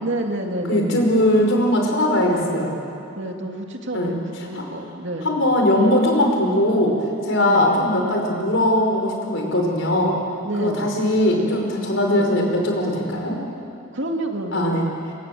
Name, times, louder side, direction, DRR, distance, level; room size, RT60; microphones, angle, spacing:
voice 1, 0.0-1.1 3.2-5.3 7.4-7.7 10.4-10.9 12.1-12.3 13.9-15.0, right 1 dB, 60° right, 3 dB, 2.5 m, -29 dB
voice 2, 0.7-2.8 3.9-4.1 4.5-4.6 5.2-7.0 7.2-10.2 10.6-13.4 14.5-14.8, left 1 dB, 65° left, 1 dB, 5.2 m, -20 dB
26.5 x 25.0 x 7.9 m, 2.7 s
head